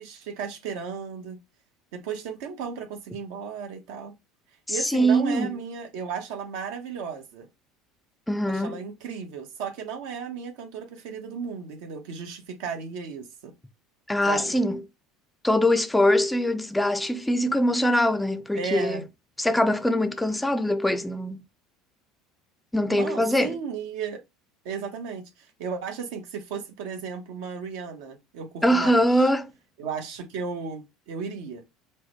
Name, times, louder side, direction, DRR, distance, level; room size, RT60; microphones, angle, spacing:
voice 1, 0.0-1.4 1.9-4.1 4.7-7.5 8.5-13.5 14.3-14.6 18.5-19.0 22.9-24.2 24.6-29.3 29.8-31.6, right 6 dB, 75° right, 1.0 m, -35 dB
voice 2, 4.7-5.5 8.3-8.8 14.1-14.8 15.4-19.0 19.4-21.4 22.7-23.5 28.6-29.5, equal, 5° left, 0.4 m, -23 dB
4.7 x 2.1 x 4.5 m
cardioid pair, 135°, 0 cm